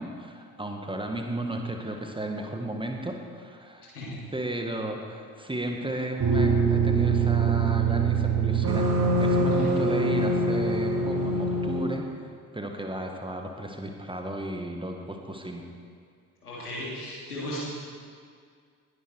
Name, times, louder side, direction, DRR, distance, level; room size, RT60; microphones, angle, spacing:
voice 1, 0.0-3.9 4.3-8.9 9.2-12.0 12.5-15.6, right 1 dB, 10° right, 3 dB, 1.7 m, -34 dB
sound 1, 6.2-11.8, right 3 dB, 50° right, 2.9 m, -24 dB
voice 2, 16.4-17.6, left 1 dB, 85° left, -7 dB, 3.2 m, -36 dB
19.5 x 10.0 x 4.7 m, 2.1 s
figure-of-eight pair, 45°, 45 cm